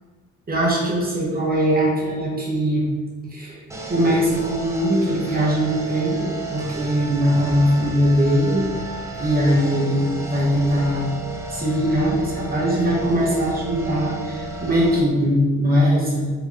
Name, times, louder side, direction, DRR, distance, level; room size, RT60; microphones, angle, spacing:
voice 1, 0.5-2.8 3.3-3.6 3.9-8.7 9.1-11.1 11.5-16.3, equal, 30° right, -5 dB, 1.2 m, -21 dB
sound 1, 3.7-15.0, right 3 dB, 10° right, 0.8 m, -32 dB
3.9 x 3.4 x 3.6 m, 1.5 s
cardioid pair, 90°, 30 cm